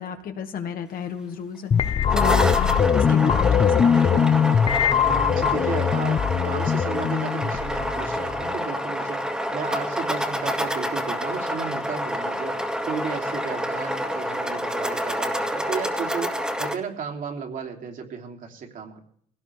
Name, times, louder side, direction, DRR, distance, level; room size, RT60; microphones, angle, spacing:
voice 1, 0.0-1.7 2.1-2.7 3.0-4.2, left 7 dB, 60° left, 5 dB, 2.0 m, -32 dB
sound 1, 1.7-8.6, left 7 dB, 35° left, 0.7 m, -21 dB
sound 2, 1.9-16.7, equal, 5° right, 2.2 m, -28 dB
voice 2, 5.0-9.2 9.5-12.5 12.8-19.0, right 6 dB, 55° right, 1 dB, 3.3 m, -34 dB
20.5 x 17.5 x 3.6 m, 0.66 s
cardioid pair, 110°, 17 cm